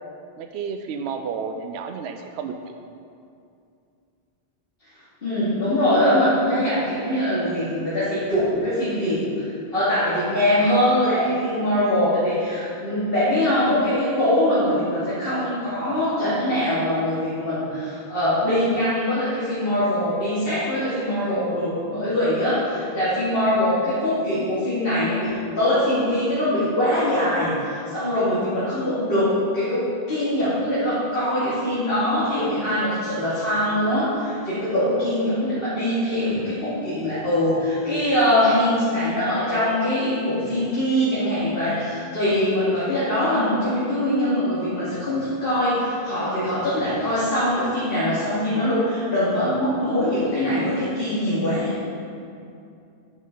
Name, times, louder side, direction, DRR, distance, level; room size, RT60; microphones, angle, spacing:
voice 1, 0.4-2.5 2.9-3.0, right 6 dB, 80° right, 6 dB, 0.9 m, -31 dB
voice 2, 5.2-51.8, left 1 dB, 60° left, -12 dB, 2.7 m, -22 dB
10.0 x 9.3 x 3.9 m, 2.5 s
omnidirectional pair, 1.1 m